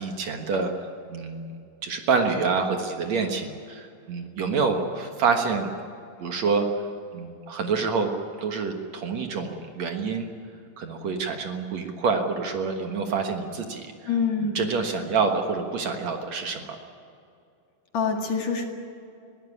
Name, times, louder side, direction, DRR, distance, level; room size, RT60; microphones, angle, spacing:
voice 1, 0.0-1.5 1.8-5.7 6.2-6.7 7.1-8.1 8.4-10.3 10.8-13.9 14.4-16.8, right 5 dB, 60° right, 4 dB, 2.5 m, -27 dB
voice 2, 14.1-14.6 17.9-18.7, left 5 dB, 55° left, 2 dB, 3.2 m, -25 dB
21.5 x 16.5 x 9.9 m, 2.5 s
omnidirectional pair, 3.9 m